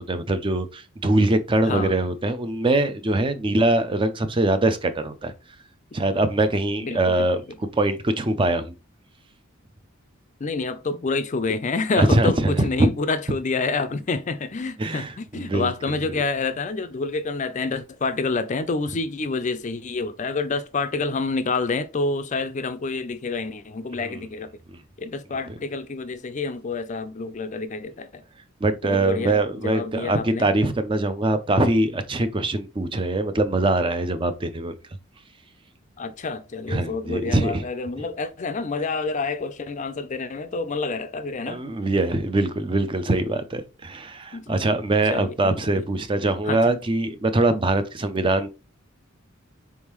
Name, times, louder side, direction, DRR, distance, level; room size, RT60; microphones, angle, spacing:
voice 1, 0.0-5.3 5.9-7.4 7.7-8.7 12.0-12.9 14.8-15.7 24.1-24.2 28.6-34.7 36.7-37.6 41.5-48.5, right 2 dB, 25° right, 0.5 m, -23 dB
voice 2, 1.6-2.0 6.8-7.3 10.4-24.5 25.0-28.2 28.8-30.5 36.0-41.6 44.3-44.7 45.1-45.8 46.4-46.6, left 3 dB, 35° left, 0.4 m, -28 dB
4.4 x 3.6 x 3.0 m
head